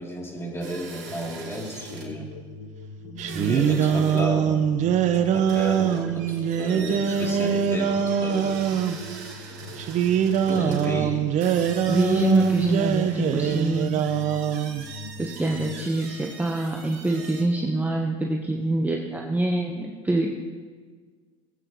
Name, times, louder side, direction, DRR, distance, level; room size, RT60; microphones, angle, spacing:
voice 1, 0.0-2.3 3.4-4.7 5.0-8.6 10.5-11.3, equal, 15° left, -3 dB, 3.6 m, -33 dB
sound 1, 0.6-2.1 3.2-4.3 4.5-4.6 5.5-10.9 11.4-17.4, right 5 dB, 65° right, 3.4 m, -43 dB
sound 2, 1.0-15.9, left 3 dB, 80° left, 1.0 m, -42 dB
voice 2, 3.1-3.6 10.6-11.1 11.9-14.0 15.2-20.3, right 1 dB, 10° right, 1 dB, 1.3 m, -25 dB
sound 3, 3.2-9.0 9.8-14.8, right 8 dB, 50° right, 1.0 m, -23 dB
20.0 x 8.9 x 3.3 m, 1.5 s
hypercardioid pair, 85°, 16 cm